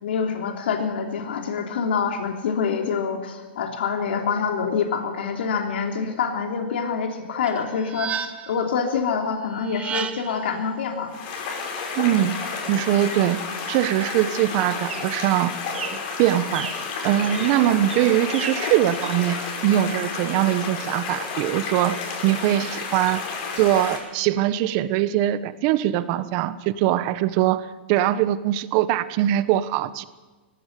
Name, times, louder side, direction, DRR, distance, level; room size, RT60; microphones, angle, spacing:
voice 1, 0.0-11.2, left 6 dB, 75° left, 3 dB, 3.2 m, -26 dB
sound 1, 7.4-8.7 9.6-10.5, right 7 dB, 20° right, 1.3 m, -32 dB
sound 2, 10.0-19.2, right 6 dB, 85° right, 3.9 m, -41 dB
sound 3, 11.1-24.0, left 5 dB, 50° left, 5.8 m, -31 dB
voice 2, 12.0-12.4 12.7-15.6 16.2-16.7 17.0-23.2 23.6-30.0, right 13 dB, 45° right, 14 dB, 1.2 m, -22 dB
19.0 x 16.0 x 9.4 m, 1.2 s
hypercardioid pair, 140°, 6 cm